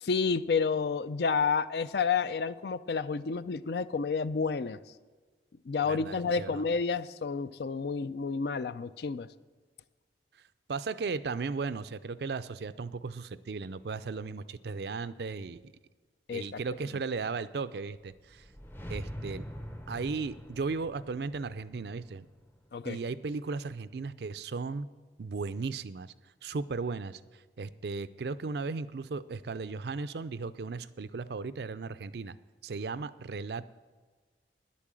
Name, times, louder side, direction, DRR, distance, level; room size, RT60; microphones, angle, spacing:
voice 1, 0.0-4.8 5.7-9.3 16.3-16.6 22.7-23.0, left 5 dB, 65° left, 15 dB, 0.4 m, -30 dB
voice 2, 5.8-6.6 10.7-15.7 16.3-18.4 18.9-19.4 19.9-22.3 22.8-24.9 25.2-26.1 26.4-27.2 27.6-32.4 32.6-33.7, right 4 dB, 65° right, 14 dB, 0.4 m, -36 dB
sound 1, 18.2-23.2, equal, 10° left, 0.6 m, -45 dB
10.5 x 8.5 x 7.5 m, 1.4 s
head